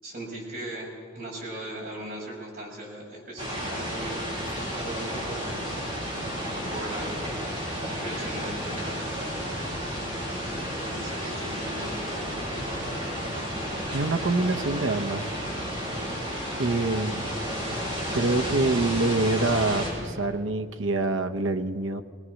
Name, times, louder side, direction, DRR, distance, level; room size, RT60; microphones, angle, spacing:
voice 1, 0.0-4.3 4.7-5.5 6.5-7.2 7.9-9.4 10.4-11.9, right 1 dB, 45° right, -3 dB, 6.3 m, -38 dB
sound 1, 3.4-19.9, equal, 30° right, 6.7 m, -32 dB
voice 2, 13.9-15.2 16.6-17.3 18.1-22.0, right 2 dB, 70° right, 7 dB, 0.8 m, -26 dB
21.5 x 19.5 x 6.4 m, 2.2 s
head